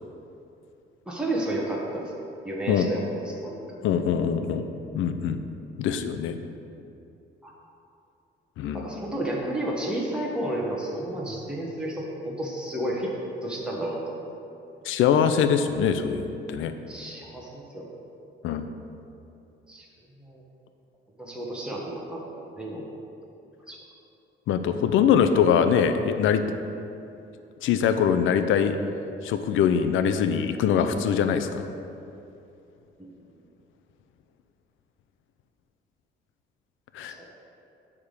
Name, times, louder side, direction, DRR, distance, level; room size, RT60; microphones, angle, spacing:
voice 1, 1.1-2.1 2.4-3.6 7.4-7.6 8.7-13.1 13.4-14.2 16.9-17.9 19.7-19.8 20.2-20.4 21.2-22.9 23.7-23.8 33.0-33.3 37.1-37.2, right 1 dB, 5° right, -4 dB, 1.4 m, -32 dB
voice 2, 3.8-5.4 5.8-6.4 8.6-8.9 14.8-16.7 18.4-18.7 24.5-26.4 27.6-28.8 29.2-31.7 36.9-37.2, left 7 dB, 85° left, 9 dB, 0.6 m, -23 dB
9.6 x 3.7 x 6.5 m, 2.7 s
cardioid pair, 90°, 20 cm